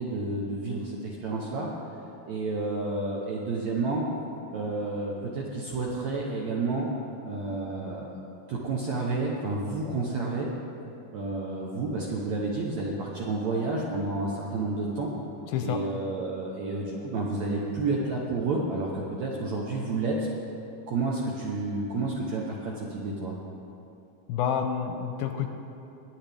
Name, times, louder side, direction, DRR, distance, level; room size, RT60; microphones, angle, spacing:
voice 1, 0.0-1.7 2.3-4.1 4.5-6.9 7.2-8.1 8.5-10.5 11.1-15.1 15.6-20.3 20.9-23.4, right 3 dB, 70° right, -3 dB, 1.7 m, -30 dB
voice 2, 24.3-25.5, left 8 dB, 80° left, 5 dB, 2.3 m, -28 dB
21.5 x 8.8 x 3.5 m, 2.8 s
omnidirectional pair, 4.5 m